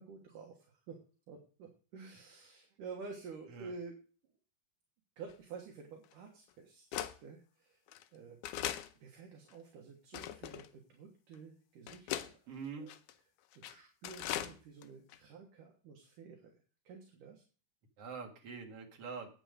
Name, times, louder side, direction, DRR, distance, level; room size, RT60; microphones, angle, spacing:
voice 1, 0.0-4.0 5.2-7.8 8.1-8.4 9.0-12.4 12.8-12.9 13.5-16.6 16.9-17.4, right 5 dB, 65° right, 1 dB, 2.8 m, -50 dB
sound 1, 5.3-5.4 6.1-6.2 6.9-7.1 7.9-8.0 8.4-8.9 9.5-9.6 10.1-10.7 11.3-11.4 11.9-12.3 12.9-13.1 13.5-13.7 14.0-14.5 14.8-14.9 15.1-15.2, left 12 dB, 80° left, 1.9 m, -39 dB
voice 2, 12.5-12.9 18.0-19.3, right 5 dB, 45° right, 2 dB, 2.5 m, -44 dB
9.2 x 9.0 x 5.1 m, 0.39 s
omnidirectional pair, 4.3 m